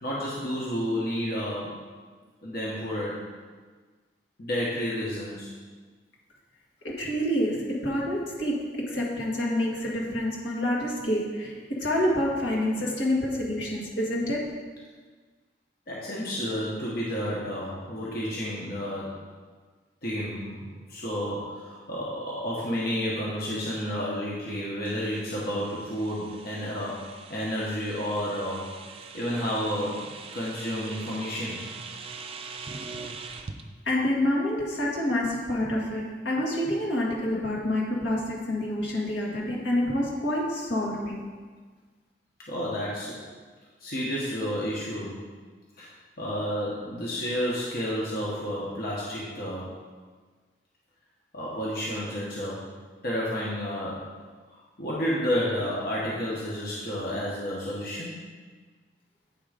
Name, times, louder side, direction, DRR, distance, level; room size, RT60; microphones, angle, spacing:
voice 1, 0.0-1.8 2.4-3.2 4.4-5.5 15.9-19.2 20.0-28.8 29.1-31.7 42.5-43.2 43.8-45.2 45.8-45.9 46.2-49.8 51.3-52.7 53.0-54.1 54.8-58.2, equal, 60° left, -6 dB, 1.3 m, -31 dB
voice 2, 6.8-14.4 33.9-41.2, left 1 dB, 85° left, -4 dB, 1.8 m, -27 dB
sound 1, 24.8-33.6, right 4 dB, 35° right, 0.5 m, -43 dB
8.6 x 3.7 x 5.0 m, 1.5 s
head